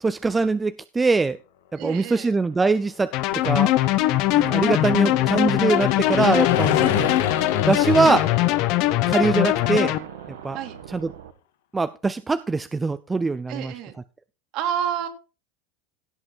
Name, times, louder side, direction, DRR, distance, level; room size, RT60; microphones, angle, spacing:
voice 1, 0.0-1.4 1.7-3.1 3.4-3.7 4.3-7.1 7.7-8.2 9.1-9.9 10.4-10.6 10.9-11.1 11.7-13.7, right 4 dB, 10° right, 0.4 m, -22 dB
voice 2, 1.8-2.3 6.9-7.1 10.5-10.8 13.5-13.9 14.5-15.1, right 9 dB, 45° right, 2.3 m, -29 dB
sound 1, 3.1-10.0, left 10 dB, 80° left, 1.8 m, -29 dB
sound 2, 3.1-10.0, left 16 dB, 50° left, 0.8 m, -21 dB
sound 3, 3.3-11.3, right 10 dB, 90° right, 1.5 m, -41 dB
16.5 x 5.7 x 4.5 m
supercardioid pair, 145°, 0 cm